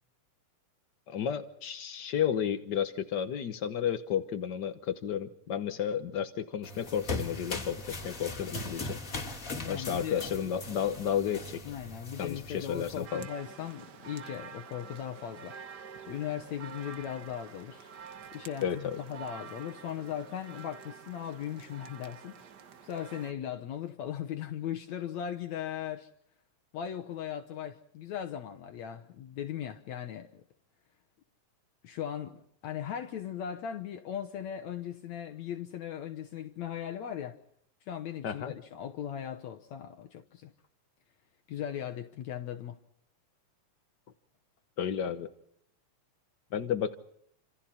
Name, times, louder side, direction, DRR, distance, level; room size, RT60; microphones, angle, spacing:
voice 1, 1.1-9.0 9.6-11.6 12.2-13.3 18.6-19.0 38.2-38.5 44.8-45.3 46.5-46.9, left 8 dB, 85° left, 0.9 m, -32 dB
sound 1, 6.6-13.1, left 2 dB, 25° left, 2.7 m, -39 dB
voice 2, 9.5-10.2 11.6-15.6 16.0-17.9 18.3-22.4 22.8-26.1 26.7-30.4 31.8-37.4 37.9-40.5 41.5-42.8, left 9 dB, 65° left, 2.2 m, -38 dB
sound 2, 13.0-23.3, right 6 dB, 70° right, 0.9 m, -48 dB
28.5 x 27.0 x 4.3 m
omnidirectional pair, 3.7 m